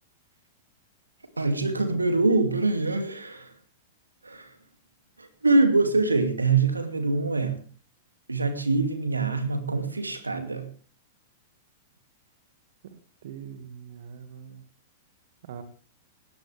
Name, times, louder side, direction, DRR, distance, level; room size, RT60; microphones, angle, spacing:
voice 1, 1.4-3.5 4.2-4.5 5.2-7.6 8.3-10.7, right 3 dB, 90° right, 8 dB, 2.5 m, -24 dB
voice 2, 12.9-14.6 15.4-15.6, right 8 dB, 60° right, 9 dB, 2.0 m, -43 dB
18.5 x 18.0 x 3.4 m, 0.37 s
figure-of-eight pair, 100°, 0 cm